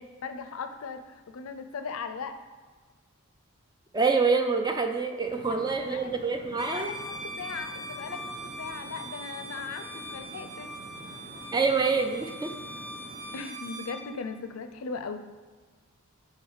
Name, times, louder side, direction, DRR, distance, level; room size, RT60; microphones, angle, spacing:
voice 1, 0.2-2.3 5.7-6.0 6.7-10.7 13.3-15.2, left 5 dB, 70° left, 9 dB, 0.4 m, -38 dB
voice 2, 3.9-6.9 11.5-12.5, right 4 dB, 20° right, 5 dB, 0.4 m, -26 dB
sound 1, 5.2-13.4, right 1 dB, 40° right, 1.0 m, -47 dB
Bowed string instrument, 6.5-14.0, right 1 dB, 70° right, 0.9 m, -41 dB
4.8 x 4.7 x 4.7 m, 1.4 s
head